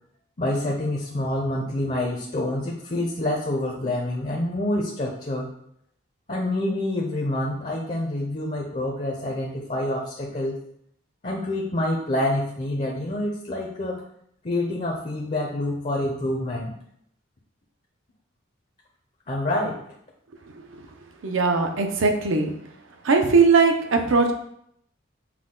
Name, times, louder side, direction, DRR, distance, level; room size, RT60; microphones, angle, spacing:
voice 1, 0.4-5.5 6.3-10.6 11.2-14.0 14.4-16.7 19.3-19.8, left 1 dB, 35° left, -1 dB, 0.6 m, -27 dB
voice 2, 21.2-22.5 23.0-24.3, right 4 dB, 65° right, 4 dB, 0.6 m, -19 dB
5.8 x 2.2 x 3.7 m, 0.71 s
head